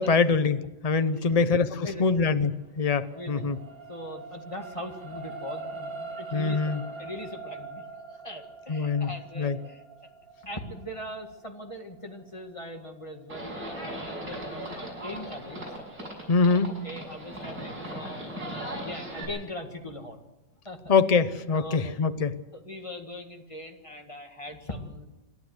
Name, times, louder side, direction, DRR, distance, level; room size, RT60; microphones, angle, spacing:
voice 1, 0.0-3.6 6.3-6.8 8.7-9.1 9.4-9.6 16.3-16.8 20.9-22.4, left 4 dB, 55° left, 11 dB, 0.4 m, -24 dB
sound 1, 2.3-14.8 15.4-15.5, right 4 dB, 35° right, 1.7 m, -43 dB
voice 2, 3.0-3.5 3.9-6.6 7.0-10.1 10.4-15.6 16.8-20.2 20.7-20.8 21.5-22.0 22.6-25.1, left 1 dB, 20° left, 4 dB, 1.9 m, -40 dB
Livestock farm animals working animals, 13.3-19.2, right 1 dB, 55° right, 7.4 m, -38 dB
28.0 x 12.0 x 8.1 m, 1.0 s
omnidirectional pair, 1.9 m